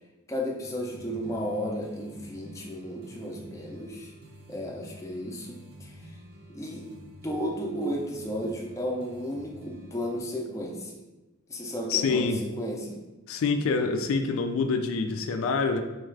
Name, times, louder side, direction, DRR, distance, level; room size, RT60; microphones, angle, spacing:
voice 1, 0.3-4.1 4.5-6.1 6.5-6.9 7.2-11.0 11.5-13.0, equal, 15° left, -1 dB, 0.4 m, -33 dB
sound 1, 0.6-10.2, equal, 50° right, 0.5 m, -49 dB
voice 2, 11.9-12.4 13.3-15.8, left 4 dB, 75° left, 6 dB, 0.3 m, -26 dB
4.4 x 2.3 x 3.2 m, 1.1 s
head